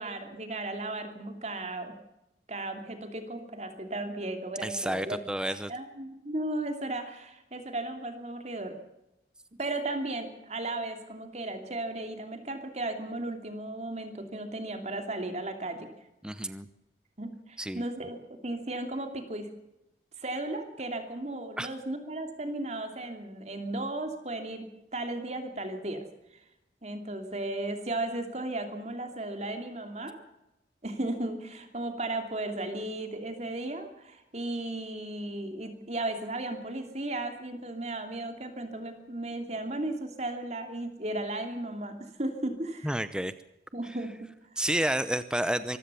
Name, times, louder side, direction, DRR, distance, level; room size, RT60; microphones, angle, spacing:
voice 1, 0.0-1.9 2.5-5.2 5.5-8.7 9.6-15.9 17.2-19.5 20.2-26.0 26.8-30.2 30.8-43.0 43.7-44.6, right 2 dB, 40° right, 6 dB, 2.8 m, -35 dB
voice 2, 4.6-5.7 16.2-16.7 17.6-17.8 21.6-21.7 42.8-43.3 44.6-45.8, right 1 dB, 5° right, 12 dB, 0.7 m, -30 dB
24.5 x 15.5 x 7.0 m, 0.90 s
head